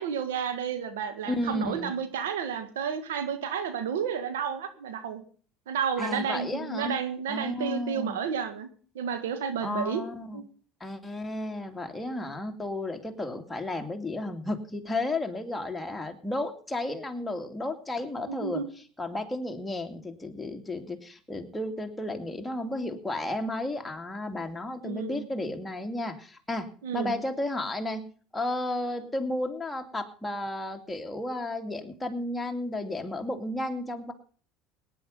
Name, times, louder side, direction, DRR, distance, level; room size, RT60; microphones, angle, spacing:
voice 1, 0.0-5.2 5.7-8.7 9.0-10.0 10.3-10.4 18.3-18.7 24.8-25.3 26.8-27.1, right 7 dB, 90° right, 9 dB, 1.7 m, -31 dB
voice 2, 1.3-2.0 6.0-7.0 7.3-8.2 9.6-10.4 10.8-18.6 19.0-26.7 26.9-28.0 28.3-34.1, left 1 dB, 10° left, 3 dB, 2.4 m, -33 dB
18.0 x 10.5 x 5.5 m, 0.44 s
supercardioid pair, 90°, 0 cm